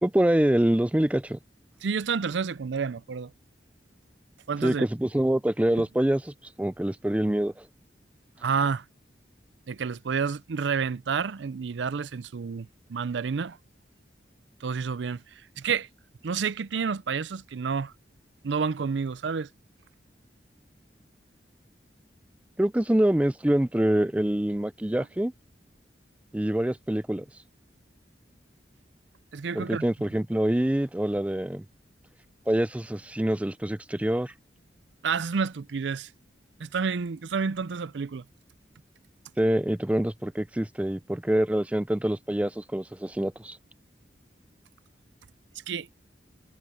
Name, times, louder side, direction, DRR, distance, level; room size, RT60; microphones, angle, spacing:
voice 1, 0.0-1.4 4.6-6.3 6.6-7.5 22.6-25.3 26.3-27.2 29.5-31.6 32.5-34.3 39.4-43.6, right 1 dB, 10° right, 0.4 m, -25 dB
voice 2, 1.8-3.3 4.5-4.9 8.4-8.8 9.7-13.6 14.6-15.9 16.2-17.9 18.4-19.5 29.3-29.8 35.0-36.1 36.6-38.2 45.7-45.9, right 5 dB, 85° right, 0.5 m, -29 dB
head